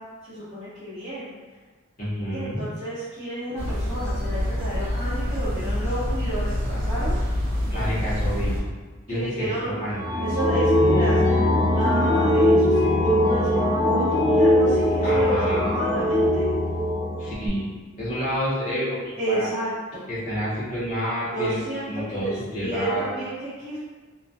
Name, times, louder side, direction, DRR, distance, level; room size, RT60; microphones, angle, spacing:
voice 1, 0.0-1.3 2.3-7.2 9.1-9.7 10.2-16.5 19.2-20.1 21.3-23.8, right 1 dB, 30° right, -16 dB, 0.9 m, -31 dB
voice 2, 2.0-2.6 7.7-8.5 9.1-10.2 15.0-15.7 17.2-17.7 18.0-19.5 20.1-21.6 21.9-23.1, equal, 40° left, -9 dB, 0.8 m, -29 dB
sound 1, 3.6-8.6, left 1 dB, 75° right, 0.5 m, -26 dB
sound 2, 9.9-17.5, left 1 dB, 15° left, 0.3 m, -20 dB
2.3 x 2.2 x 2.5 m, 1.3 s
head